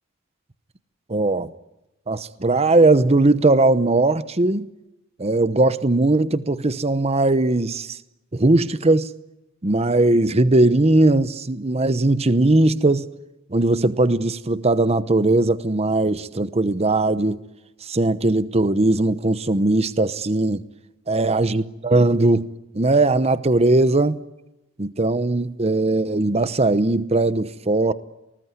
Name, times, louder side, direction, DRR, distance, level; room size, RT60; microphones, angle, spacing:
voice 1, 1.1-1.5 2.1-4.7 5.2-8.0 8.3-9.1 9.6-13.1 13.5-17.4 17.8-20.6 21.1-22.5 22.7-24.2 24.8-27.9, right 2 dB, 30° right, 0.9 m, -19 dB
28.0 x 20.0 x 9.6 m
head